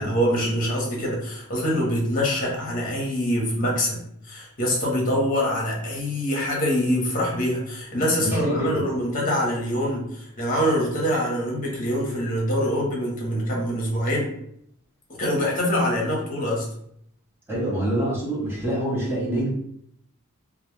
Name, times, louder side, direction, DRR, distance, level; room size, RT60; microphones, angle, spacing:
voice 1, 0.0-14.3 15.2-16.7, equal, 40° left, -2 dB, 0.8 m, -24 dB
voice 2, 8.2-8.9 17.5-19.5, right 1 dB, 10° right, -6 dB, 0.8 m, -26 dB
2.3 x 2.1 x 3.0 m, 0.70 s
head